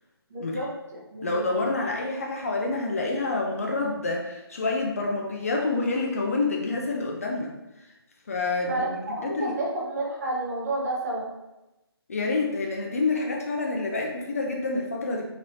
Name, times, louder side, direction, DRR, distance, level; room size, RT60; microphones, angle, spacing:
voice 1, 0.3-1.4 8.6-11.3, right 2 dB, 40° right, -3 dB, 0.8 m, -30 dB
voice 2, 1.2-7.5 8.3-8.9 9.2-9.6 12.1-15.2, left 3 dB, 35° left, 0 dB, 0.4 m, -27 dB
3.1 x 2.9 x 2.7 m, 0.98 s
figure-of-eight pair, 155°, 13 cm